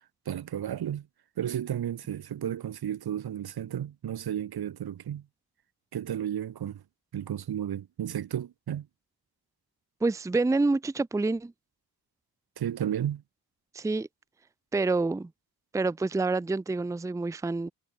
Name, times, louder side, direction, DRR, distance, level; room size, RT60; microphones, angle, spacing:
voice 1, 0.3-1.0 1.4-5.2 5.9-6.8 7.1-8.9 12.6-13.2, right 10 dB, 90° right, 2.4 m, -33 dB
voice 2, 10.0-11.5 13.7-14.1 14.7-15.3 15.7-17.7, right 3 dB, 10° right, 0.5 m, -27 dB
wide cardioid pair, 135°, 37 cm